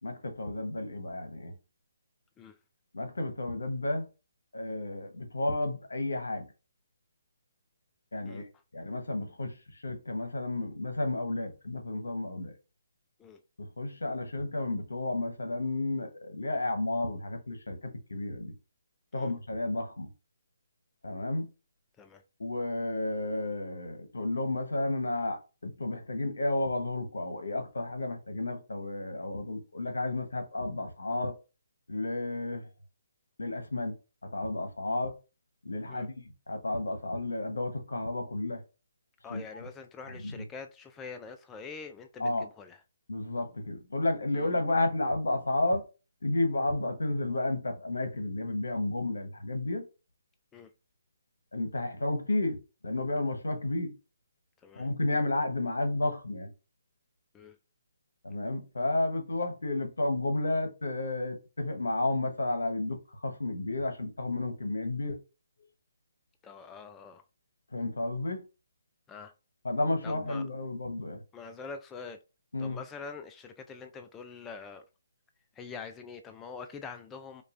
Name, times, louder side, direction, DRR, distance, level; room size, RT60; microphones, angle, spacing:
voice 1, 0.0-1.5 2.9-4.1 4.5-6.4 8.1-8.5 8.7-12.5 13.6-18.5 19.1-20.1 21.0-21.5 22.4-31.3 31.9-32.7 33.4-33.9 34.3-35.1 35.6-36.1 36.5-38.6 39.3-39.4 40.2-40.4 42.2-42.4 43.1-45.8 46.2-49.8 51.5-53.9 54.7-56.5 58.2-65.2 67.7-68.4 69.6-71.2 72.5-72.8, left 2 dB, 85° left, 1.0 m, -32 dB
voice 2, 39.2-42.8 44.3-44.5 50.5-50.7 54.6-54.9 57.3-57.6 66.4-67.2 69.1-69.3 70.0-70.4 71.3-72.2 72.6-74.8 75.5-77.4, left 5 dB, 15° left, 0.3 m, -44 dB
5.2 x 2.3 x 2.5 m
figure-of-eight pair, 145°, 0 cm